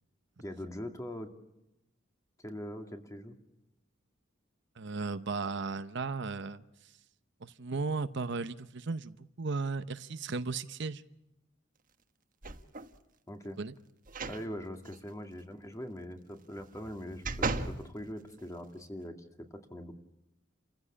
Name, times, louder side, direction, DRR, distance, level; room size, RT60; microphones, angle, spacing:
voice 1, 0.4-1.3 2.4-3.4 13.3-13.6 14.3-19.2 19.5-19.9, equal, 15° left, 5 dB, 2.2 m, -42 dB
voice 2, 4.8-6.6 7.4-11.0 13.6-13.7, right 4 dB, 65° right, 12 dB, 0.8 m, -35 dB
sound 1, 12.4-13.0 14.1-14.4 14.9-15.0 16.6-17.8 18.4-18.5, right 3 dB, 45° right, 1.4 m, -36 dB
30.0 x 15.5 x 8.5 m, 0.90 s
head